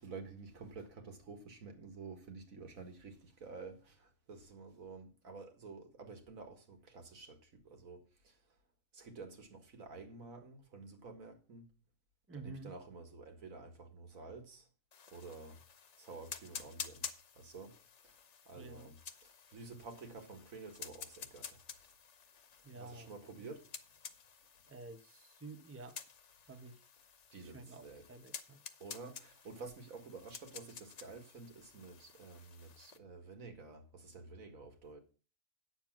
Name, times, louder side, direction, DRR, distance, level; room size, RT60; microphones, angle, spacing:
voice 1, 0.0-8.4 8.9-11.7 12.3-14.7 15.1-15.6 16.0-17.1 17.4-17.8 18.0-18.2 18.5-19.0 19.2-21.6 22.7-23.7 27.3-28.1 28.8-35.0, right 4 dB, 80° right, 2.2 m, -50 dB
voice 2, 12.3-12.7 18.6-18.9 22.6-23.1 23.4-23.5 24.7-26.0 26.5-26.8 27.4-27.8 28.1-28.6, right 3 dB, 15° right, 0.7 m, -50 dB
sound 1, 14.9-33.0, left 7 dB, 60° left, 1.2 m, -51 dB
9.1 x 7.1 x 6.0 m
omnidirectional pair, 1.4 m